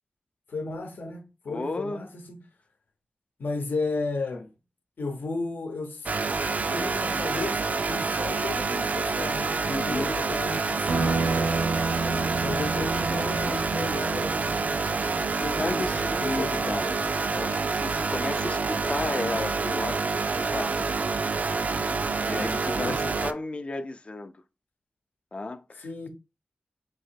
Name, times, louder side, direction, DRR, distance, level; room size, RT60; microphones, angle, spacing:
voice 1, 0.5-2.4 3.4-4.5 5.0-6.1 6.7-11.6 12.4-14.3 15.4-16.9 22.8-23.0 25.8-26.1, left 3 dB, 80° left, 0.8 m, -34 dB
voice 2, 1.5-2.1 9.7-10.3 12.1-12.3 15.3-17.0 17.3-20.8 22.3-24.3 25.3-25.9, left 2 dB, 35° left, 0.4 m, -34 dB
sound 1, 6.1-23.3, right 4 dB, 50° right, 0.3 m, -27 dB
sound 2, 10.9-16.0, right 3 dB, 75° right, 0.7 m, -31 dB
3.8 x 2.9 x 4.4 m
wide cardioid pair, 105°, 3 cm